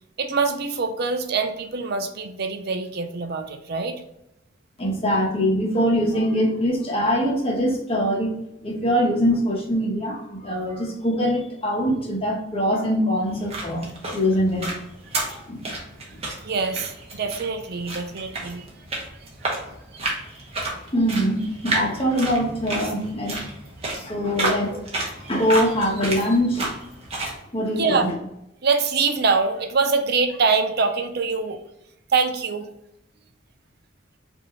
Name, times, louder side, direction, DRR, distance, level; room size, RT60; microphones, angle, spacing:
voice 1, 0.2-4.0 16.4-18.6 19.4-19.5 24.4-24.6 27.8-28.1 28.6-31.6 32.1-32.7, right 4 dB, 55° right, 8 dB, 0.5 m, -24 dB
voice 2, 4.8-8.3 8.6-13.9 14.1-14.6 15.3-15.6 16.1-16.2 20.9-23.5 23.9-24.7 25.3-26.7 27.5-28.1, equal, 30° left, -2 dB, 1.1 m, -23 dB
sound 1, 13.3-27.4, right 2 dB, 30° right, 1.1 m, -32 dB
5.1 x 2.8 x 3.1 m, 0.82 s
head